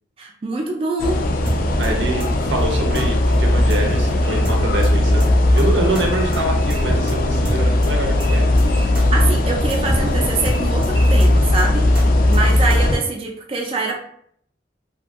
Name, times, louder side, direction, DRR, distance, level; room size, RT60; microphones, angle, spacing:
voice 1, 0.2-1.2 9.1-11.9 12.3-14.0, right 3 dB, 30° right, 1 dB, 0.3 m, -24 dB
sound 1, 1.0-13.0, left 1 dB, 50° left, 0.3 m, -18 dB
sound 2, 1.5-1.9 2.2-2.3 2.6-2.7 2.9-3.1 3.3-3.4 3.7-4.1 4.4-4.9 5.2-5.3 5.6-5.7 5.9-6.0 6.3-6.4 6.7-7.1 7.4-7.9 8.2-8.3 8.6-8.7 8.9-9.1 9.3-9.4 9.7-10.1 10.4-10.9 11.2-11.3 11.6-11.7 11.9-12.1 12.3-12.4 12.7-13.1, equal, 5° right, 0.7 m, -27 dB
voice 2, 1.8-5.3 5.5-8.5 12.7-12.9, right 1 dB, 90° right, 1 dB, 0.6 m, -25 dB
sound 3, 2.1-3.0 3.7-4.5 6.1-6.9 8.2-8.9 10.4-11.3, right 1 dB, 75° left, 0.7 m, -39 dB
2.8 x 2.5 x 2.3 m, 0.65 s
head